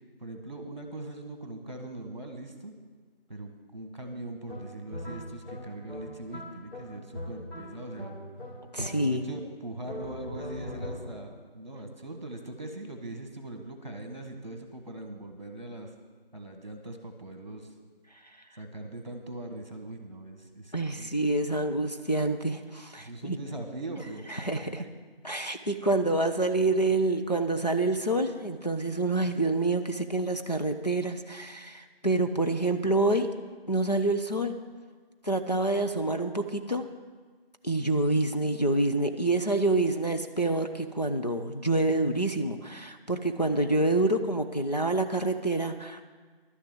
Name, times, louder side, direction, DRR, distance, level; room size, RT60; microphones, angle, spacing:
voice 1, 0.2-2.7 3.3-8.1 8.8-15.9 16.3-17.7 18.5-21.1 23.0-24.2 24.6-24.9, right 2 dB, 45° right, 5 dB, 1.5 m, -41 dB
sound 1, 4.5-9.4 9.8-11.4, equal, 80° left, 3.4 m, -41 dB
voice 2, 8.7-9.2 20.7-23.4 24.3-24.8 25.2-33.3 33.7-34.5 35.2-36.9 37.6-46.1, right 2 dB, 45° left, 5 dB, 0.6 m, -27 dB
12.0 x 6.8 x 7.8 m, 1.5 s
figure-of-eight pair, 180°, 31 cm